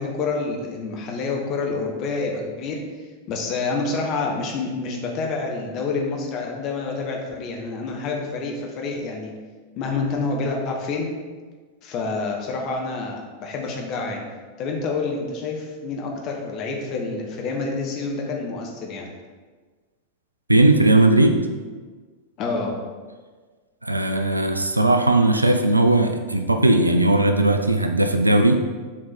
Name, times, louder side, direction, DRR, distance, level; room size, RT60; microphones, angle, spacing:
voice 1, 0.0-2.8 3.3-9.3 9.8-11.1 11.8-14.2 14.6-19.1 22.4-22.7, left 3 dB, 40° left, 0 dB, 1.1 m, -28 dB
voice 2, 20.5-21.4 23.8-28.5, right 2 dB, 85° right, 6 dB, 0.5 m, -18 dB
7.4 x 4.3 x 4.3 m, 1.4 s
figure-of-eight pair, 90°, 0 cm